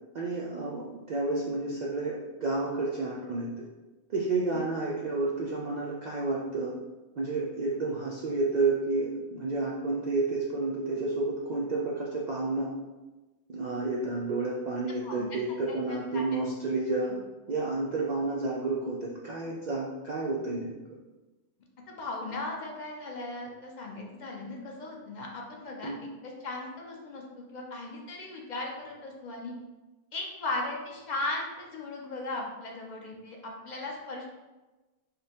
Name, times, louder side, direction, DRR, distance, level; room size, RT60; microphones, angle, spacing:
voice 1, 0.1-0.8 1.1-3.7 4.1-6.7 7.2-12.7 13.5-17.1 17.5-20.7 25.8-26.0, right 3 dB, 75° right, -5 dB, 0.4 m, -30 dB
voice 2, 21.9-25.9 26.2-29.5 30.1-34.3, left 2 dB, 50° left, -1 dB, 0.5 m, -37 dB
5.0 x 2.2 x 2.8 m, 1.1 s
omnidirectional pair, 1.3 m